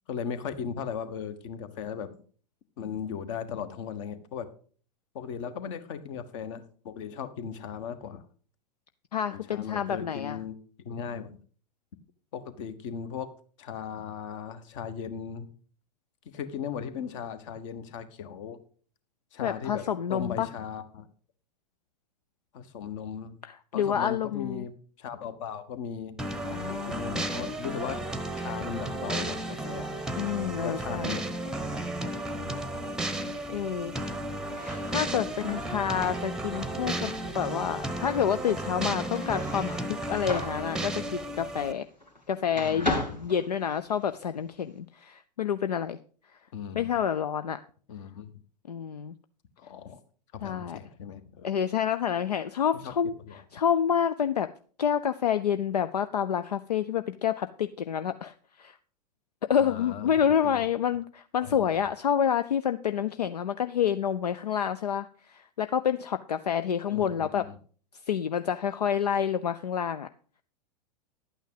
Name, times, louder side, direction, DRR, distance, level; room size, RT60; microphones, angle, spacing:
voice 1, 0.1-2.1 2.8-4.5 5.1-8.2 9.3-10.6 10.8-11.4 12.3-13.3 13.6-15.5 16.3-18.6 19.3-19.8 20.1-21.1 22.5-23.4 23.7-26.2 26.7-28.0 28.4-29.9 30.6-32.9 42.6-43.2 46.5-46.9 47.9-48.3 49.6-50.0 50.3-51.5 52.7-52.9 53.3-53.4 59.6-60.6 61.4-61.6 66.9-67.6, left 7 dB, 45° left, 11 dB, 1.4 m, -37 dB
voice 2, 9.1-10.4 19.4-20.5 23.4-24.7 26.4-27.3 30.2-31.2 33.5-34.0 34.9-41.9 42.3-46.0 46.7-47.6 48.7-49.1 50.4-50.8 51.4-53.1 53.5-54.5 54.8-58.8 59.5-67.5 68.0-70.1, left 8 dB, 70° left, 11 dB, 0.6 m, -28 dB
sound 1, 26.2-41.7, right 1 dB, 5° right, 0.9 m, -34 dB
sound 2, 34.5-42.2 42.5-44.2, left 2 dB, 90° left, 3.1 m, -37 dB
11.5 x 9.1 x 4.8 m, 0.43 s
figure-of-eight pair, 95°, 21 cm